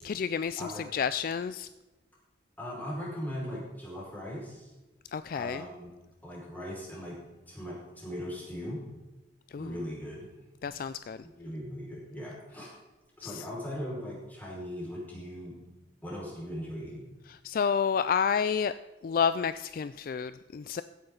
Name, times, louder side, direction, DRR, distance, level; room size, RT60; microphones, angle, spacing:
voice 1, 0.0-1.7 5.1-5.6 9.5-9.7 10.6-11.2 13.2-13.4 17.3-18.7 19.0-20.8, left 6 dB, 50° left, 13 dB, 0.3 m, -30 dB
voice 2, 2.6-4.7 5.3-5.9 6.2-7.2 7.5-8.8 9.6-10.3 10.6-10.8 11.2-12.7 13.2-15.5 16.0-17.1, equal, 10° left, -6 dB, 5.1 m, -39 dB
16.0 x 9.6 x 3.9 m, 1.1 s
head